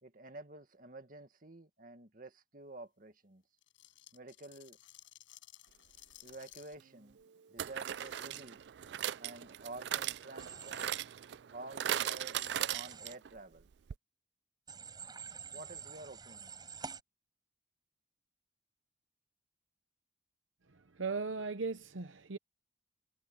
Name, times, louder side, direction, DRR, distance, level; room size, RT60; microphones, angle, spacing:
voice 1, 0.0-3.4 4.1-4.8 6.2-7.2 7.5-8.7 9.2-10.9 11.5-12.4 12.7-13.7 15.5-16.6, right 2 dB, 45° right, 2.0 m, -50 dB
sound 1, 3.6-6.8 7.9-8.3, left 13 dB, 85° left, 5.3 m, -57 dB
sound 2, 6.3-6.4 7.6-13.3 13.6-13.7 13.9-14.0, right 11 dB, 60° right, 0.3 m, -38 dB
Human voice / Train, 10.4-11.0 12.3-13.2 14.7-17.0, right 6 dB, 20° right, 7.4 m, -47 dB
voice 2, 21.0-22.4, right 4 dB, 85° right, 0.9 m, -37 dB
head